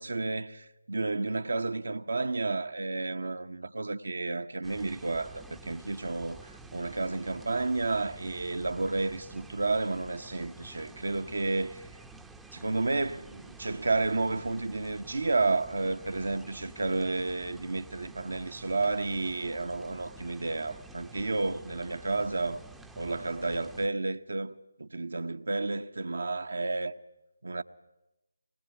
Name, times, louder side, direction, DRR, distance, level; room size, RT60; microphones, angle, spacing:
voice 1, 0.0-11.9 12.5-22.6 23.0-26.9 27.4-27.6, right 3 dB, 60° right, 1.2 m, -31 dB
sound 1, 4.6-23.9, right 2 dB, 5° right, 0.9 m, -50 dB
25.5 x 21.0 x 9.4 m
figure-of-eight pair, 150°, 0 cm